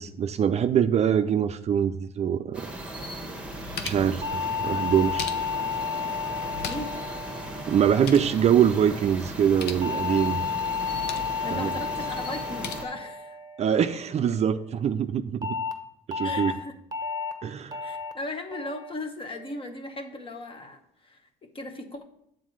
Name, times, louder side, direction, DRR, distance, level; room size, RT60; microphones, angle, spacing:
voice 1, 0.0-2.7 3.8-5.3 7.7-10.4 11.5-11.8 13.6-15.4 16.1-16.5 17.4-17.8, right 8 dB, 40° right, 0.4 m, -24 dB
sound 1, 2.5-12.8, right 1 dB, 5° right, 1.2 m, -38 dB
sound 2, 3.3-4.2 4.9-5.7 6.4-7.1 7.3-7.4 7.8-8.3 9.4-9.9 10.7-11.4 12.3-12.7, left 7 dB, 75° left, 0.7 m, -39 dB
sound 3, 4.2-8.7 9.8-14.3 15.4-15.7 16.1-16.5 16.9-17.3 17.7-18.1 18.5-18.9 19.3-19.7, left 5 dB, 25° right, 0.8 m, -32 dB
voice 2, 11.4-13.4 16.2-16.7 17.8-22.0, left 2 dB, 30° left, 1.0 m, -37 dB
7.4 x 4.0 x 6.4 m
cardioid pair, 110°, 17 cm